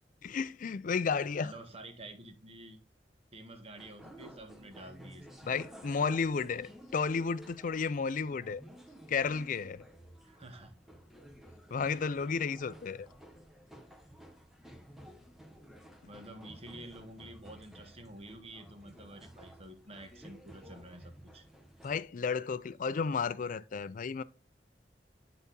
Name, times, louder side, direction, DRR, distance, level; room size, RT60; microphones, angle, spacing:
voice 1, 0.2-1.5 5.5-8.6 9.1-9.8 11.7-13.1 21.8-24.2, left 5 dB, 50° left, 0.4 m, -32 dB
voice 2, 1.4-2.8 3.3-5.3 10.2-10.7 16.1-21.5, right 1 dB, 35° right, 1.1 m, -49 dB
sound 1, 3.8-22.0, equal, ahead, 0.9 m, -54 dB
9.6 x 4.0 x 3.8 m
head